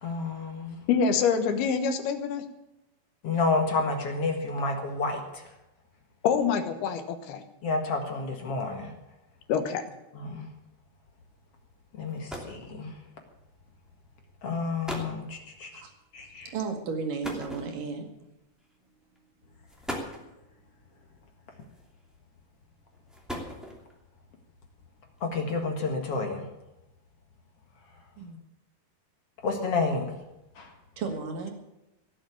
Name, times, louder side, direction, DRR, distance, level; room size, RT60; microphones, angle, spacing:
voice 1, 0.0-0.8 3.2-5.5 7.6-8.9 10.1-10.5 11.9-13.0 14.4-15.8 16.1-16.5 25.2-26.5 29.4-30.1 30.6-30.7, left 3 dB, 50° left, 3 dB, 2.0 m, -30 dB
voice 2, 0.9-2.4 6.2-7.4 9.5-9.8, left 6 dB, 75° left, 8 dB, 3.1 m, -26 dB
sound 1, 11.7-11.8 12.1-12.7 13.7-13.9 14.5-14.6 14.8-15.2 17.2-18.1 19.0-19.2 19.7-20.3 21.6-22.1 22.9-24.0, equal, ahead, 1.8 m, -38 dB
voice 3, 16.5-18.1 28.2-28.4 31.0-31.5, right 5 dB, 60° right, 3 dB, 3.4 m, -33 dB
17.5 x 7.8 x 8.6 m, 0.95 s
omnidirectional pair, 4.7 m